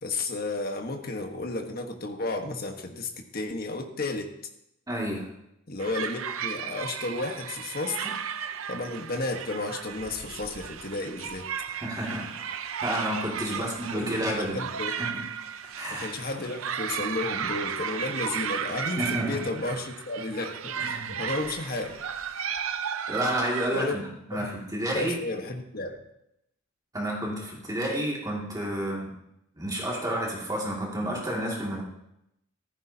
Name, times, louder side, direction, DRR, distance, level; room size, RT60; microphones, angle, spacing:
voice 1, 0.0-4.3 5.7-8.1 8.7-11.5 13.5-14.2 14.5-14.9 15.9-20.7 21.2-22.0 23.7-24.0 24.3-24.5 24.9-26.0, left 2 dB, 45° left, 4 dB, 1.4 m, -32 dB
voice 2, 4.9-5.3 11.8-12.5 12.8-14.6 14.9-15.2 15.7-16.1 19.0-19.4 20.7-21.2 23.1-24.0 24.3-25.1 26.9-29.1 29.6-31.8, right 1 dB, 20° right, -3 dB, 2.4 m, -30 dB
sound 1, 5.8-23.7, right 8 dB, 80° right, 0.6 m, -34 dB
15.0 x 14.5 x 2.9 m, 0.81 s
head